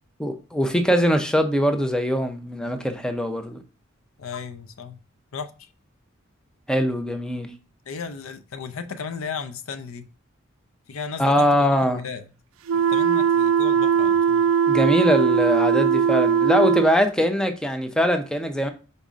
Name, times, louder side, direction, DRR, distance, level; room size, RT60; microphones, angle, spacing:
voice 1, 0.2-3.6 6.7-7.5 11.2-12.1 14.7-18.7, equal, 5° left, 0.5 m, -22 dB
voice 2, 4.2-5.0 5.3-5.7 7.9-10.1 10.9-12.3 12.7-14.4, left 5 dB, 85° left, 0.5 m, -35 dB
sound 1, 12.7-16.9, right 7 dB, 75° right, 0.4 m, -20 dB
5.1 x 4.1 x 2.4 m
head